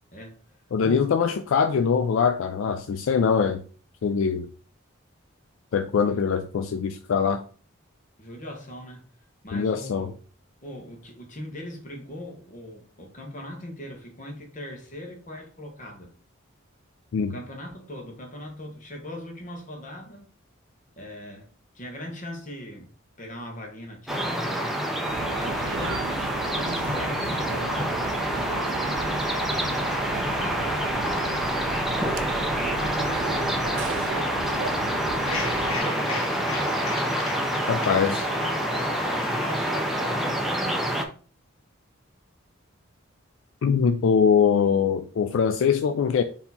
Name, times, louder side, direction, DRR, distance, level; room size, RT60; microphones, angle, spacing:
voice 1, 0.1-0.6 0.8-1.1 6.1-6.2 8.2-9.0 9.4-10.2 10.6-16.1 17.3-20.3 21.0-21.5 21.7-24.7 25.3-27.8 28.3-31.9 32.6-33.8 34.7-36.4 38.3-38.5 38.9-41.1, left 1 dB, 35° left, 1.0 m, -40 dB
voice 2, 0.7-3.6 4.0-4.5 5.7-7.4 9.5-10.1 17.1-17.3 37.7-38.3 43.6-46.2, left 6 dB, 70° left, 0.3 m, -22 dB
sound 1, 24.1-41.0, equal, ahead, 0.5 m, -27 dB
sound 2, 25.1-35.8, right 6 dB, 60° right, 0.3 m, -36 dB
sound 3, 35.2-40.3, left 3 dB, 85° left, 1.2 m, -37 dB
4.3 x 2.8 x 4.1 m
head